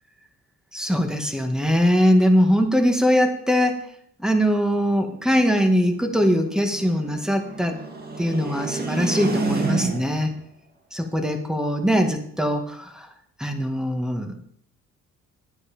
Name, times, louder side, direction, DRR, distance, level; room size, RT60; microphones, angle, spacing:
voice 1, 0.7-3.9 4.2-7.8 8.2-10.3 10.9-13.1 13.4-14.3, equal, ahead, 4 dB, 1.9 m, -21 dB
sound 1, 4.8-10.3, right 3 dB, 30° right, 2.0 m, -30 dB
10.0 x 9.7 x 5.1 m, 0.70 s
cardioid pair, 90°, 30 cm